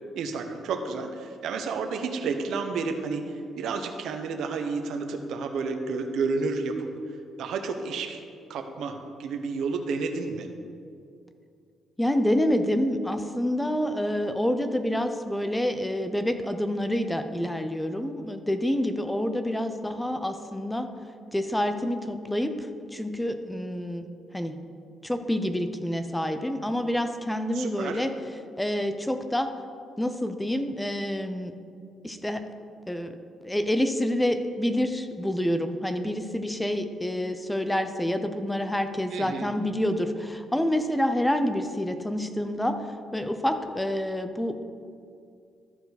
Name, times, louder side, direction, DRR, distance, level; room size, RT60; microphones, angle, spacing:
voice 1, 0.2-8.2 8.5-10.5 27.5-28.0 39.1-39.5, right 4 dB, 75° right, 6 dB, 0.8 m, -31 dB
voice 2, 12.0-20.9 21.3-24.1 24.3-24.6 25.0-28.1 28.6-29.5 30.0-31.6 32.0-32.4 32.9-33.1 33.4-42.9 43.1-44.7, left 1 dB, 5° left, 8 dB, 0.6 m, -27 dB
13.5 x 4.7 x 4.1 m, 2.4 s
cardioid pair, 90°, 0 cm